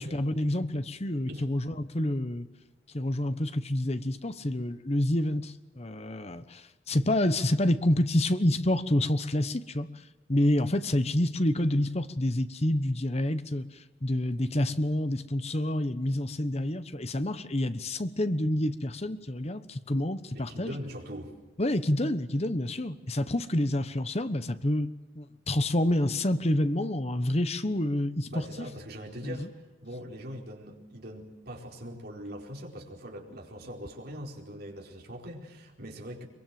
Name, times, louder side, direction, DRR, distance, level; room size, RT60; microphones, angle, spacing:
voice 1, 0.0-2.5 2.9-9.9 10.3-13.7 14.0-20.7 21.6-24.9 25.1-28.7 29.2-29.5, left 1 dB, 35° left, 12 dB, 1.1 m, -28 dB
voice 2, 20.3-21.4 28.3-29.5 29.8-36.3, equal, 55° right, 1 dB, 4.6 m, -41 dB
24.0 x 23.0 x 7.7 m, 1.1 s
head